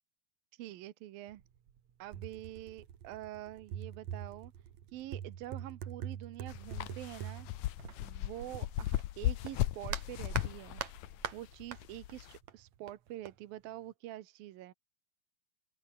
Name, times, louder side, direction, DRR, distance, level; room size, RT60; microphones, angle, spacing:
voice 1, 0.5-1.4 2.0-4.5 4.9-7.5 8.0-10.8 11.3-14.7, right 14 dB, 75° right, 2.8 m, -46 dB
sound 1, 1.3-1.4 1.7-9.1 9.4-11.8 12.1-13.3, right 9 dB, 55° right, 2.7 m, -43 dB
sound 2, 6.5-12.4, left 15 dB, 75° left, 1.8 m, -37 dB
open air
omnidirectional pair, 4.3 m